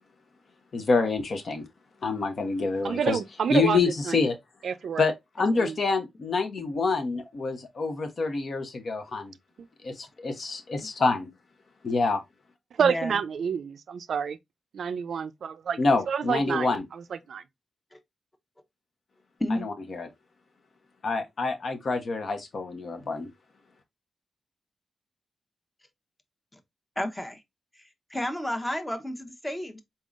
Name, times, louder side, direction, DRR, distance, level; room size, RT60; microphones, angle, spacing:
voice 1, 0.7-1.7 2.0-3.2 3.5-4.4 5.0-9.3 9.8-11.3 11.8-12.2 15.8-16.8 19.6-20.1 21.0-23.3, left 3 dB, 60° left, 0.9 m, -27 dB
voice 2, 2.8-3.8 4.1-4.2 4.6-5.1 5.6-5.8 12.8-14.4 14.7-15.8 16.1-17.4, right 7 dB, 80° right, 0.3 m, -28 dB
voice 3, 12.8-13.2 17.9-18.0 19.4-19.7 27.0-27.4 28.1-29.8, left 1 dB, 15° left, 0.8 m, -31 dB
4.1 x 3.7 x 2.4 m
cardioid pair, 80°, 0 cm